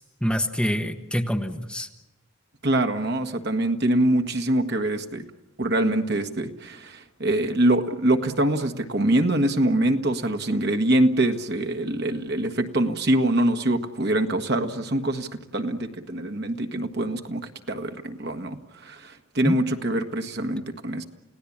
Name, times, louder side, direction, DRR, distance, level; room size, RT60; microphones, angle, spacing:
voice 1, 0.0-1.9 19.4-19.6, equal, 5° left, 4 dB, 1.0 m, -26 dB
voice 2, 2.6-5.2 5.6-21.0, right 1 dB, 50° right, 5 dB, 1.5 m, -24 dB
29.5 x 17.5 x 8.6 m, 1.0 s
head